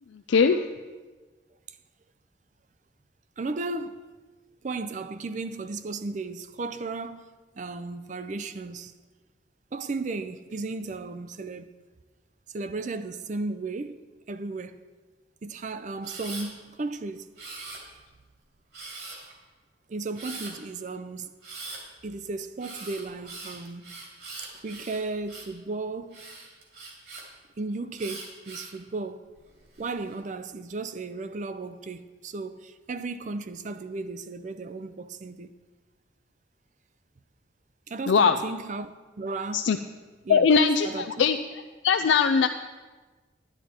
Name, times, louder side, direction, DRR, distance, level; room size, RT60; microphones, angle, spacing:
voice 1, 0.3-0.6 38.1-38.4 39.5-39.8 40.3-41.4 41.8-42.5, left 5 dB, 85° left, 0.4 m, -20 dB
voice 2, 3.4-4.0 4.6-7.3 7.6-8.9 9.7-11.7 12.5-14.8 15.4-17.3 19.9-21.3 22.0-23.9 24.6-26.2 27.6-29.3 29.8-35.5 37.9-38.9 39.2-39.8 40.2-40.5 40.8-41.1, right 3 dB, 40° right, 0.5 m, -35 dB
Camera, 16.0-16.5 17.4-18.1 18.7-19.3 20.2-20.5 21.4-21.8 22.6-25.6 26.1-27.2 28.0-28.8 29.4-29.9, right 3 dB, 60° right, 2.5 m, -41 dB
11.0 x 10.5 x 4.4 m
head